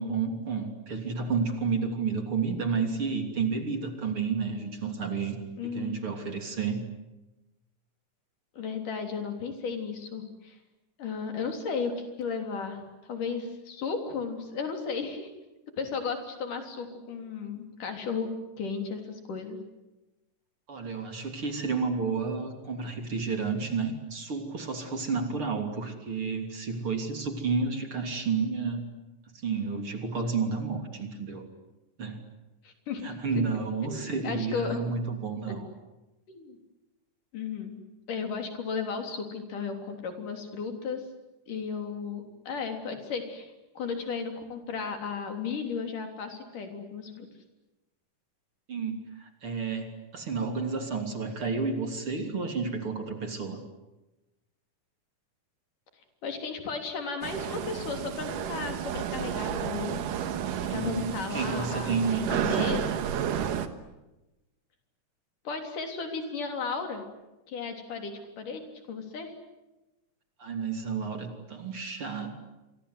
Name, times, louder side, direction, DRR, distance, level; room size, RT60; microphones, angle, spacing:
voice 1, 0.0-5.4 5.6-6.8 20.7-28.9 29.3-31.5 32.0-32.2 33.0-35.7 48.7-53.6 60.6-62.7 70.4-72.4, right 5 dB, 40° right, 5 dB, 3.7 m, -31 dB
voice 2, 5.6-6.0 8.6-10.6 11.0-12.8 13.1-15.3 15.8-18.3 18.6-19.6 32.6-33.1 33.8-34.8 36.3-36.6 37.3-37.8 38.1-41.0 41.5-47.3 56.2-60.0 60.7-63.0 65.4-67.0 67.5-69.3, left 5 dB, 75° left, 5 dB, 5.0 m, -34 dB
sound 1, 57.2-63.7, right 9 dB, 80° right, 3.0 m, -31 dB
29.5 x 24.5 x 8.1 m, 1.0 s
omnidirectional pair, 3.8 m